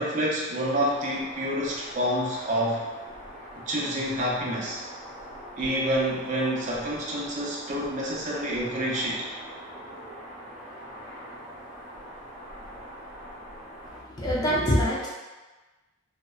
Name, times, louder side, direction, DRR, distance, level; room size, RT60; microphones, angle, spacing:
voice 1, 0.0-2.8 3.5-4.8 5.5-9.2, equal, 40° right, -4 dB, 0.5 m, -28 dB
sound 1, 0.6-14.0, equal, ahead, 1.1 m, -43 dB
voice 2, 13.9-15.1, equal, 20° left, -5 dB, 0.5 m, -25 dB
2.7 x 2.0 x 2.3 m, 1.2 s
head